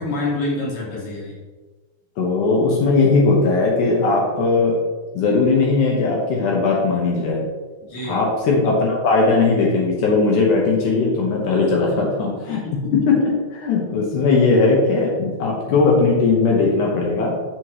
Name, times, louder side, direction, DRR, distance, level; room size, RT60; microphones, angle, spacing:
voice 1, 0.0-1.4 7.9-8.2 12.5-12.9, left 2 dB, 50° left, -5 dB, 2.8 m, -27 dB
voice 2, 2.2-4.8 5.1-7.4 8.0-12.6 12.9-13.2 13.5-17.3, left 3 dB, 80° left, -3 dB, 2.6 m, -18 dB
10.5 x 4.8 x 3.1 m, 1.3 s
omnidirectional pair, 3.6 m